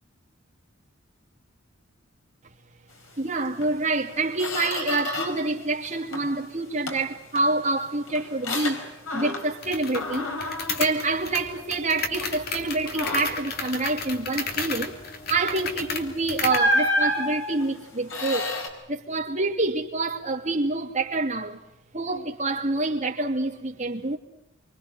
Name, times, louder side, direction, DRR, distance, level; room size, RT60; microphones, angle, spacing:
voice 1, 3.2-10.3 10.8-14.9 15.3-18.5 18.9-21.6 21.9-24.2, right 2 dB, 35° right, 2.8 m, -27 dB
Squeak, 3.6-3.7 4.1-5.5 5.8-6.4 6.9-9.7 9.9-11.8 12.2-12.4 12.9-13.5 15.6-15.8 16.5-18.7, left 1 dB, 85° left, 4.9 m, -30 dB
sound 1, 9.6-16.7, left 4 dB, 50° left, 3.0 m, -33 dB
27.5 x 25.0 x 6.3 m
head